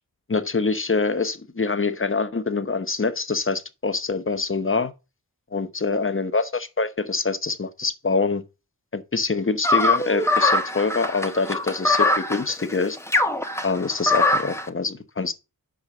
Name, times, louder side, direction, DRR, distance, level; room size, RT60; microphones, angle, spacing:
voice 1, 0.3-4.9 5.5-8.4 8.9-13.0 13.6-15.3, left 4 dB, 35° left, 0.9 m, -25 dB
sound 1, 9.6-14.7, left 2 dB, 5° left, 1.0 m, -22 dB
6.1 x 4.8 x 6.6 m
wide cardioid pair, 60°, 37 cm